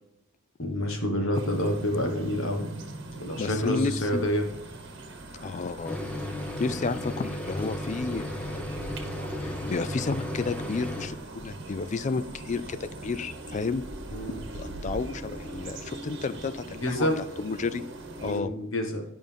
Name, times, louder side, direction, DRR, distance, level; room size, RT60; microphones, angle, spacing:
voice 1, 0.6-2.7 3.2-4.5 14.1-14.4 16.7-17.2 18.2-19.0, equal, 65° left, 3 dB, 1.4 m, -28 dB
sound 1, 1.3-18.4, right 2 dB, 55° right, 1.2 m, -41 dB
voice 2, 3.3-4.2 5.4-6.0 6.6-8.6 9.4-13.8 14.5-17.8 18.2-18.6, left 4 dB, 35° left, 14 dB, 0.3 m, -31 dB
sound 2, 5.8-11.1, left 1 dB, 5° left, 1.0 m, -34 dB
11.0 x 5.3 x 3.5 m, 0.86 s
head